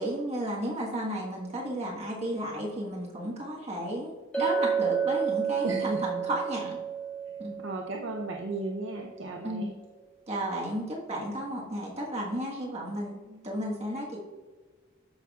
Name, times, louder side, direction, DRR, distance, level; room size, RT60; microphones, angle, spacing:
voice 1, 0.0-4.1 4.4-6.8 7.4-7.6 9.4-9.7 10.3-14.2, right 1 dB, 30° right, -4 dB, 1.4 m, -33 dB
Chink clink, 4.3-8.8, right 7 dB, 5° left, 1.1 m, -31 dB
voice 2, 5.6-6.0 7.6-9.7 13.3-13.6, right 2 dB, 60° right, 2 dB, 0.6 m, -35 dB
13.0 x 5.8 x 2.4 m, 1.4 s
head